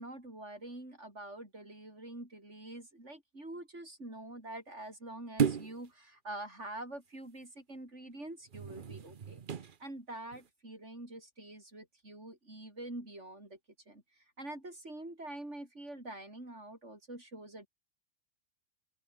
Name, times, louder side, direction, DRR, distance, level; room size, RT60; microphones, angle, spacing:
voice 1, 0.0-13.6 13.9-17.7, right 1 dB, 60° right, 6.8 m, -46 dB
sound 1, 5.4-5.9 8.5-9.8 10.3-10.5, right 7 dB, 45° right, 0.9 m, -34 dB
open air
omnidirectional pair, 1.4 m